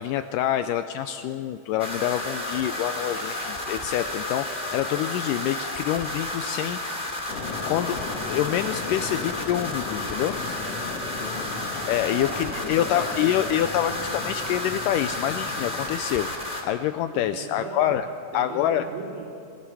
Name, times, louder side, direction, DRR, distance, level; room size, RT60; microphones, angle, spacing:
voice 1, 0.0-6.8 7.7-10.4 11.9-16.3 16.6-18.1 18.3-18.9, left 11 dB, 80° left, 10 dB, 2.1 m, -26 dB
sound 1, 1.8-16.6, left 1 dB, 15° left, 2.7 m, -32 dB
sound 2, 7.3-16.0, left 4 dB, 50° left, 2.5 m, -37 dB
voice 2, 11.2-11.7 12.2-13.2 17.1-18.0 18.3-19.2, right 3 dB, 85° right, -6 dB, 4.5 m, -38 dB
24.0 x 16.5 x 7.0 m, 2.7 s
omnidirectional pair, 4.0 m